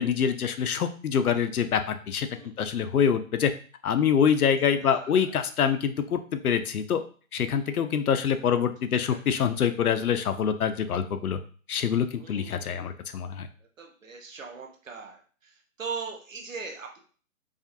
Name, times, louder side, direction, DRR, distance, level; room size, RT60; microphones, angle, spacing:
voice 1, 0.0-2.3 2.6-3.5 3.8-7.0 7.3-11.4 11.7-13.5, left 7 dB, 90° left, 9 dB, 0.7 m, -25 dB
voice 2, 2.3-2.7 4.8-5.4 7.6-8.0 8.9-9.2 12.1-12.8 13.8-17.0, right 5 dB, 65° right, 2 dB, 1.0 m, -41 dB
4.9 x 2.4 x 2.7 m, 0.41 s
hypercardioid pair, 175°, 43 cm